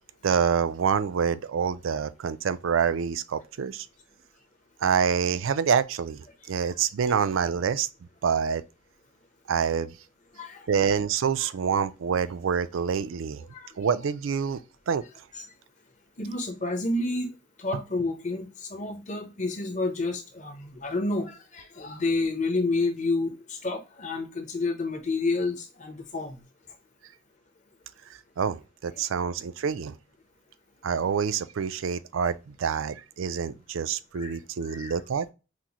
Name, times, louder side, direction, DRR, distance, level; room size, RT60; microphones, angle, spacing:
voice 1, 0.2-3.9 4.8-7.9 8.2-8.6 9.5-10.0 10.7-13.4 13.8-14.6 14.9-15.0 17.7-17.8 28.4-30.0 30.8-35.3, right 6 dB, 80° right, 0.4 m, -26 dB
voice 2, 16.2-17.3 17.6-26.4 29.0-29.1 34.1-34.4 34.6-34.9, left 3 dB, 35° left, 0.9 m, -30 dB
5.9 x 2.1 x 3.0 m
head